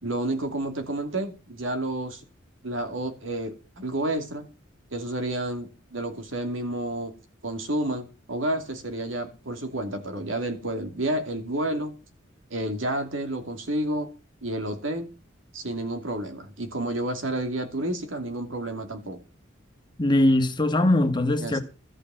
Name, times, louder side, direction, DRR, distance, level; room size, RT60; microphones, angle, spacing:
voice 1, 0.0-2.2 2.6-4.5 4.9-7.1 7.4-12.0 12.5-14.1 14.4-15.1 15.5-19.2 21.4-21.6, right 1 dB, 70° right, 2.7 m, -30 dB
voice 2, 20.0-21.6, left 1 dB, 20° left, 1.4 m, -21 dB
14.0 x 6.8 x 7.7 m
head